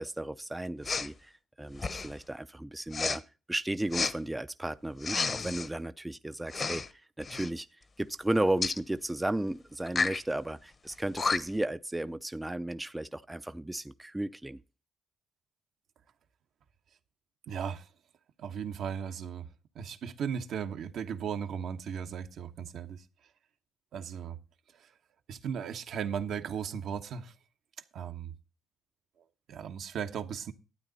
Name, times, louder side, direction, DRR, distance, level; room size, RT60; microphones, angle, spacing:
voice 1, 0.0-1.3 1.6-3.2 3.5-7.7 8.0-14.6, right 1 dB, 10° right, 0.5 m, -34 dB
Respiratory sounds, 0.8-1.1 1.7-2.2 2.9-3.2 3.9-4.1 5.0-5.7 6.5-6.9 7.2-7.5 8.6-8.8 9.9-10.2 10.9-11.0 11.2-11.6, left 4 dB, 40° left, 1.0 m, -31 dB
voice 2, 17.5-17.9 18.4-19.5 19.7-23.0 23.9-24.4 24.8-24.9 25.3-27.3 27.9-28.3 29.5-30.5, right 7 dB, 70° right, 1.1 m, -36 dB
12.0 x 8.9 x 4.0 m
cardioid pair, 90°, 0 cm